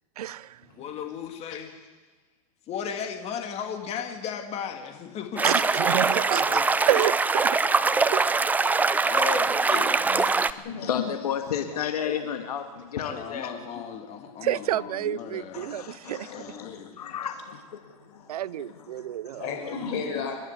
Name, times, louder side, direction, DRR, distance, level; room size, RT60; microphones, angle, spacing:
voice 1, 0.2-0.6 5.4-6.6 6.9-7.7 8.1-8.4 14.4-16.4 18.3-19.5, right 12 dB, 85° right, 0.7 m, -29 dB
voice 2, 0.8-1.7 2.7-5.4 5.8-6.6 9.0-9.6 13.0-15.7 16.3-16.9, left 8 dB, 35° left, 2.5 m, -36 dB
sound 1, 5.4-10.5, right 4 dB, 10° right, 0.6 m, -23 dB
voice 3, 9.7-10.9 18.1-18.2 19.4-20.4, left 5 dB, 55° left, 6.1 m, -34 dB
voice 4, 10.6-13.9 15.5-20.3, left 8 dB, 85° left, 1.9 m, -34 dB
28.0 x 12.0 x 8.4 m
hypercardioid pair, 125°, 19 cm